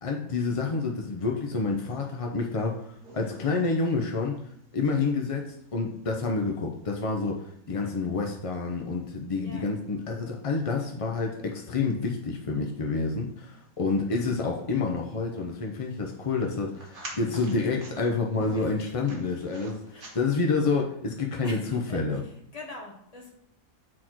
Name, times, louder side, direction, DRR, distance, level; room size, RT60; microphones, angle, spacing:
voice 1, 0.0-2.9 3.1-4.4 4.7-19.8 20.1-22.2, left 4 dB, 45° left, 0 dB, 0.4 m, -28 dB
sound 1, 1.2-20.6, right 2 dB, 65° right, 2.2 m, -51 dB
voice 2, 18.4-19.0 19.9-20.2 21.4-23.3, left 2 dB, 25° left, -1 dB, 1.4 m, -44 dB
7.6 x 4.3 x 4.5 m, 0.71 s
omnidirectional pair, 1.6 m